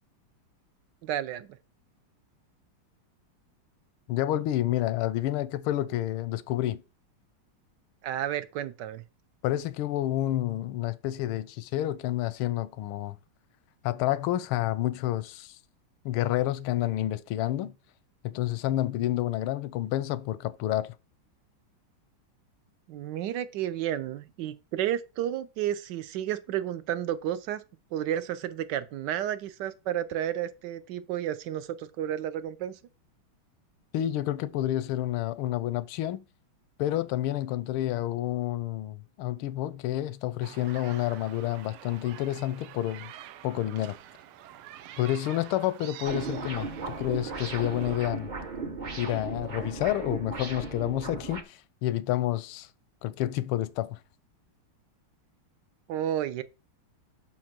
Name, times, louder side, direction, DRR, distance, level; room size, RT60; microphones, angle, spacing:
voice 1, 1.0-1.5 8.0-9.0 22.9-27.6 27.9-32.8 55.9-56.4, right 11 dB, 70° right, 1.1 m, -31 dB
voice 2, 4.1-6.8 9.4-13.2 13.8-15.6 16.0-17.7 18.2-20.9 33.9-36.2 36.8-43.1 43.4-44.0 45.0-48.3 49.0-52.7 53.0-54.0, left 13 dB, 85° left, 1.5 m, -29 dB
sound 1, 40.4-48.0, right 12 dB, 90° right, 1.5 m, -47 dB
sound 2, 46.0-51.4, right 4 dB, 45° right, 0.6 m, -36 dB
6.3 x 5.8 x 5.9 m
omnidirectional pair, 2.3 m